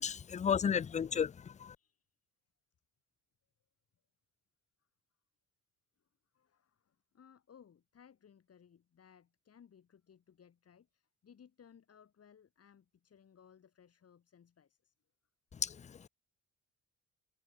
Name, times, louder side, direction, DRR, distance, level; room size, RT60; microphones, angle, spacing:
voice 1, 0.0-1.8 15.6-16.1, left 7 dB, 25° left, 0.4 m, -33 dB
voice 2, 1.8-2.1 6.3-14.9, left 8 dB, 50° left, 7.2 m, -62 dB
cardioid pair, 90°, 30 cm